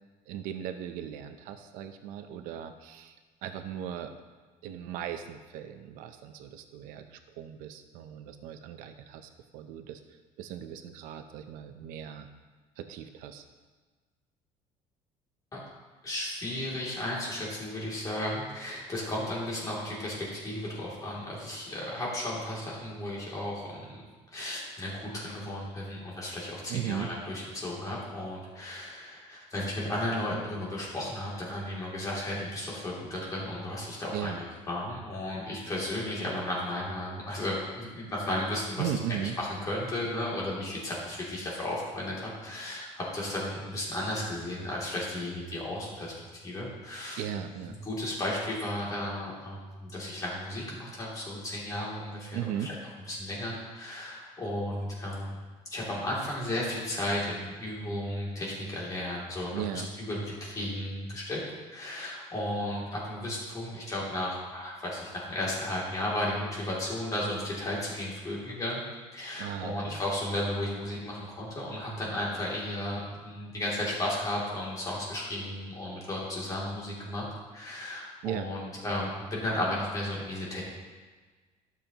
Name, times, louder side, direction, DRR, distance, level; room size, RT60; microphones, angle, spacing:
voice 1, 0.3-3.2 3.4-4.1 4.6-10.0 10.4-12.3 12.8-13.4 26.7-27.1 34.1-34.4 38.8-39.4 47.2-47.8 52.3-52.7 59.5-59.9 69.4-70.0 78.2-78.5, right 10 dB, 85° right, 8 dB, 0.7 m, -37 dB
voice 2, 16.0-24.0 24.3-34.3 34.7-38.9 39.2-46.1 46.4-47.2 47.8-52.7 53.1-55.3 55.7-61.4 61.7-68.8 69.1-80.6, left 1 dB, 25° left, -5 dB, 2.8 m, -34 dB
12.5 x 7.1 x 3.0 m, 1.4 s
cardioid pair, 145°, 14 cm